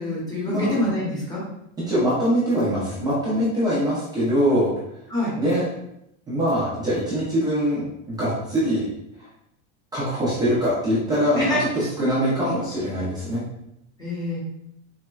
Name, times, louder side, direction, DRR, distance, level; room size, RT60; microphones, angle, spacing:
voice 1, 0.0-1.4 5.1-5.3 11.4-11.6 14.0-14.4, left 1 dB, 10° left, -6 dB, 0.8 m, -25 dB
voice 2, 1.9-4.7 5.4-5.6 6.3-8.9 9.9-13.4, equal, 10° right, -10 dB, 0.4 m, -23 dB
4.0 x 2.1 x 2.2 m, 0.80 s
supercardioid pair, 160°, 42 cm